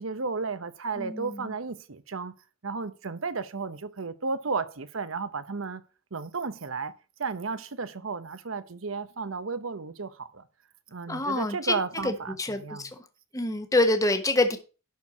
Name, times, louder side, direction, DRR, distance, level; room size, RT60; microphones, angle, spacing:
voice 1, 0.0-2.3 2.6-5.8 6.1-6.9 7.2-10.4 10.9-12.9, right 4 dB, 80° right, 0.9 m, -33 dB
voice 2, 1.0-1.5 11.1-11.7 12.0-12.9 13.3-14.6, left 2 dB, 15° left, 1.1 m, -26 dB
11.5 x 4.6 x 6.1 m
head